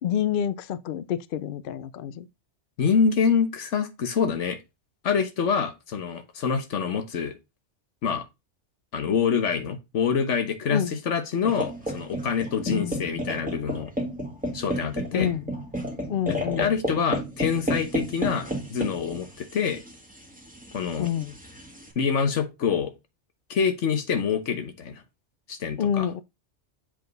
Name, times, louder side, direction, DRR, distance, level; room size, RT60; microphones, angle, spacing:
voice 1, 0.0-2.3 10.7-11.0 12.7-13.2 15.1-15.5 16.1-16.7 21.0-21.3 25.8-26.2, left 9 dB, 60° left, 0.6 m, -28 dB
voice 2, 2.8-4.6 5.0-7.4 8.0-8.2 8.9-13.9 14.5-15.3 16.3-19.8 20.7-21.1 22.0-22.9 23.5-25.0 25.5-26.1, left 6 dB, 80° left, 1.4 m, -26 dB
sound 1, 11.4-21.9, equal, 5° right, 1.5 m, -32 dB
7.7 x 3.8 x 3.9 m
omnidirectional pair, 1.2 m